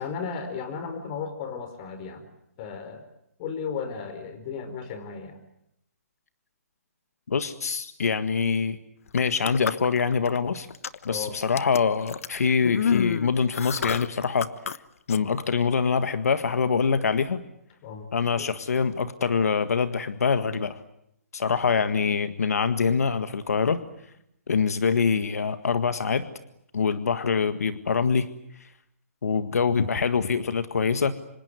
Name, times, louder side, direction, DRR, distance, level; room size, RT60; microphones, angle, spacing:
voice 1, 0.0-2.3 2.6-3.1 3.4-5.4 11.1-11.4 17.8-18.1 18.4-18.5, left 6 dB, 30° left, 9 dB, 4.6 m, -34 dB
voice 2, 7.3-8.8 9.1-10.7 11.0-14.5 15.1-17.4 18.1-20.8 21.3-23.8 24.5-26.3 26.7-28.3 28.6-28.7 29.2-31.1, left 5 dB, 80° left, 11 dB, 1.7 m, -24 dB
sound 1, 9.1-10.4 10.7-11.1 11.6-14.8 15.1-15.2, left 7 dB, 65° left, 1.2 m, -29 dB
26.5 x 25.5 x 8.1 m, 0.76 s
hypercardioid pair, 160°, 8 cm